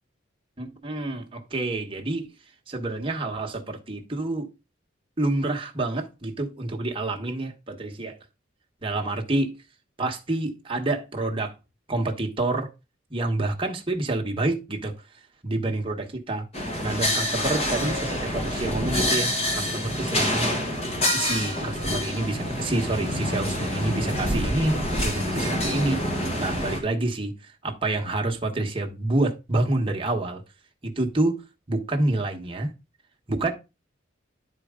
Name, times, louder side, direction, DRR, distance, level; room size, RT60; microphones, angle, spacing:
voice 1, 0.6-2.3 2.7-4.5 5.2-8.2 8.8-9.6 10.0-11.5 11.9-12.7 13.1-14.9 15.4-16.5 16.8-20.6 21.1-26.0 26.4-30.4 30.8-31.4 31.7-32.7 33.3-33.5, right 2 dB, 25° right, 1.2 m, -28 dB
sound 1, 16.5-26.8, left 1 dB, 30° left, 1.5 m, -27 dB
10.5 x 4.5 x 3.7 m
head